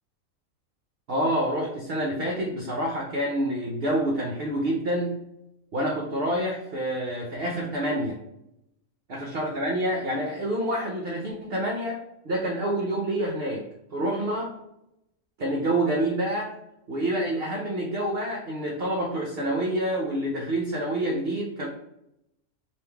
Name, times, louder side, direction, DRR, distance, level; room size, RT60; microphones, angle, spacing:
voice 1, 1.1-5.2 5.7-8.2 9.1-13.6 13.9-14.5 15.4-16.5 16.9-21.7, right 1 dB, 55° right, -1 dB, 0.7 m, -27 dB
3.6 x 2.7 x 4.4 m, 0.84 s
omnidirectional pair, 1.5 m